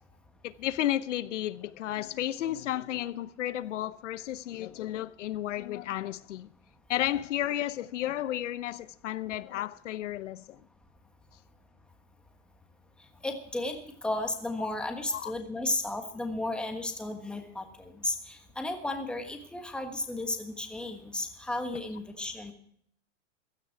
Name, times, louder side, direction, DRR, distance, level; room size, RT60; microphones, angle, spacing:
voice 1, 0.4-6.5 6.9-10.6 15.1-15.3, left 13 dB, 85° left, 0.8 m, -33 dB
voice 2, 13.2-22.5, left 2 dB, 5° left, 1.4 m, -34 dB
16.0 x 12.5 x 4.5 m
supercardioid pair, 155°, 36 cm